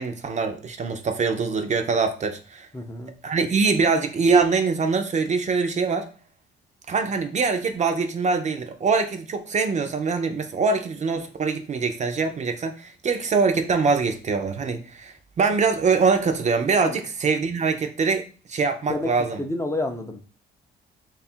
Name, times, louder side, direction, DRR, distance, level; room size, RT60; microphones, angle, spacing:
voice 1, 0.0-2.7 3.2-6.1 6.9-19.4, right 4 dB, 40° right, 0.5 m, -23 dB
voice 2, 2.7-3.1 16.8-17.0 18.9-19.1 19.4-20.2, left 2 dB, 15° left, 0.5 m, -29 dB
3.1 x 2.4 x 4.2 m
cardioid pair, 95°, 19 cm